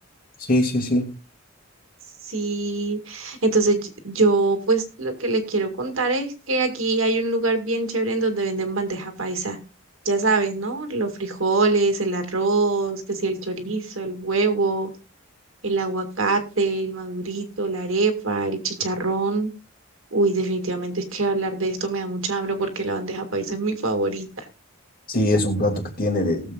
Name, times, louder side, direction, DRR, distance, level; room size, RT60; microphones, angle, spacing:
voice 1, 0.5-1.1 25.1-26.5, left 1 dB, 45° left, 2 dB, 2.6 m, -22 dB
voice 2, 2.2-9.6 10.1-14.9 15.6-19.5 20.1-24.5, right 3 dB, 75° right, 5 dB, 2.0 m, -24 dB
19.0 x 7.4 x 2.4 m, 0.31 s
head